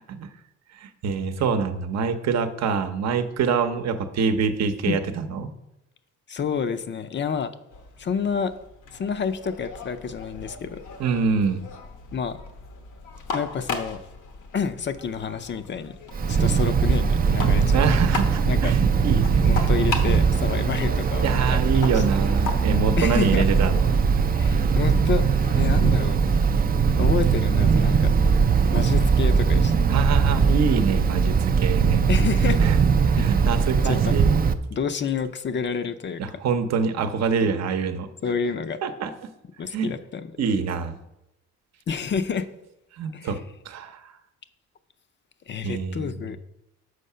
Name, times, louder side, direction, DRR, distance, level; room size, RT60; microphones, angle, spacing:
voice 1, 0.7-5.5 11.0-11.6 17.7-19.7 21.2-24.0 24.5-24.7 29.9-32.0 32.4-32.8 33.1-34.7 36.2-38.1 38.8-39.3 39.7-39.9 40.4-41.0 42.9-43.4 43.6-44.1 45.6-46.3, right 5 dB, 60° right, 8 dB, 0.8 m, -26 dB
voice 2, 6.3-7.5 8.0-8.5 8.9-10.8 12.1-12.4 13.3-14.0 14.5-15.9 16.3-17.8 18.5-18.7 19.4-22.0 23.0-23.5 24.3-26.2 26.9-28.1 28.7-29.7 32.1-32.6 33.2-33.4 33.8-34.2 34.7-36.2 37.4-37.5 38.2-38.8 39.6-40.3 41.9-42.5 43.1-43.4 45.5-46.4, left 6 dB, 40° left, 11 dB, 0.5 m, -29 dB
sound 1, 7.7-26.9, left 4 dB, 80° left, 1.1 m, -38 dB
Wind, 16.1-34.5, right 5 dB, 30° right, 0.4 m, -20 dB
6.5 x 4.7 x 5.5 m, 0.89 s
cardioid pair, 90°, 30 cm